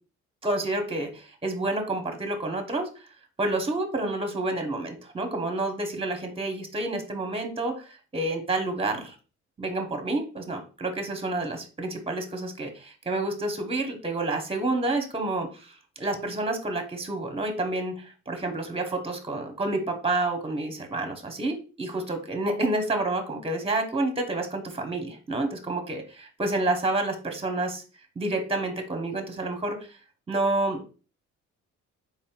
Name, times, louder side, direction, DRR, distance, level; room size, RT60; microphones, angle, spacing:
voice 1, 0.4-2.9 3.4-9.1 9.6-27.8 28.1-29.8 30.3-30.8, right 2 dB, 20° right, 4 dB, 1.0 m, -29 dB
4.1 x 3.6 x 2.3 m, 0.35 s
cardioid pair, 90°, 30 cm